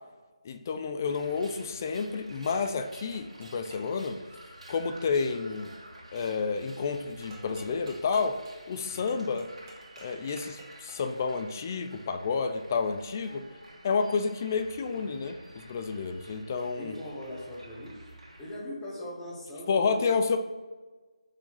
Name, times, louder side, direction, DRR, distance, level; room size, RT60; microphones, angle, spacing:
voice 1, 0.4-4.2 4.7-5.7 6.1-8.4 8.7-9.5 10.0-13.4 13.8-17.0 19.7-20.4, left 5 dB, 30° left, 8 dB, 0.6 m, -30 dB
sound 1, 1.0-18.6, right 1 dB, 80° right, 2.0 m, -51 dB
sound 2, 3.1-4.0 7.3-11.2, right 2 dB, 30° right, 1.4 m, -52 dB
voice 2, 16.8-18.1 18.4-20.1, left 1 dB, 10° left, -5 dB, 1.2 m, -40 dB
6.4 x 6.1 x 4.2 m, 1.3 s
figure-of-eight pair, 165°, 3 cm